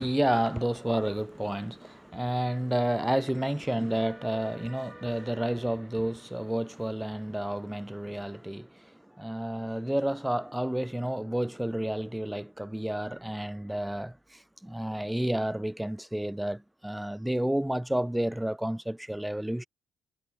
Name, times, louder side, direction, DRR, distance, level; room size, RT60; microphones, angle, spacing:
voice 1, 0.0-19.6, right 1 dB, 5° right, 0.4 m, -30 dB
cardioid pair, 90°, 0 cm